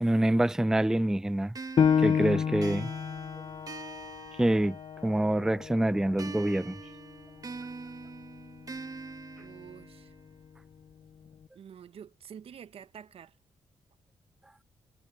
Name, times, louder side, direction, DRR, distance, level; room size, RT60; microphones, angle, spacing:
voice 1, 0.0-1.6 2.0-2.9 4.4-4.8 5.0-6.8, right 1 dB, 5° right, 0.4 m, -26 dB
sound 1, 1.5-5.2 6.2-10.2, right 4 dB, 35° right, 1.6 m, -44 dB
Piano, 1.8-6.9 7.4-7.5 8.1-8.6, left 7 dB, 50° left, 0.6 m, -30 dB
voice 2, 9.4-10.1 11.5-13.3, right 8 dB, 65° right, 1.0 m, -48 dB
cardioid pair, 70°, 11 cm